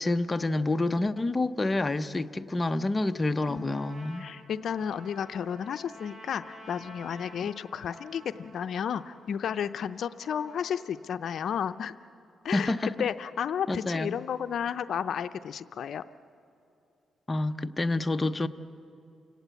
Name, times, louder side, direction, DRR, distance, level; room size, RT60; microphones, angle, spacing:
voice 1, 0.0-4.3 12.5-12.9 13.7-14.2 17.3-18.5, left 2 dB, 20° left, 8 dB, 0.7 m, -28 dB
Trumpet, 3.2-11.3, equal, 25° right, 5.1 m, -51 dB
voice 2, 3.5-3.8 4.2-12.0 12.4-16.0, left 8 dB, 65° left, 11 dB, 0.5 m, -32 dB
29.0 x 17.5 x 8.2 m, 2.6 s
cardioid pair, 105°, 0 cm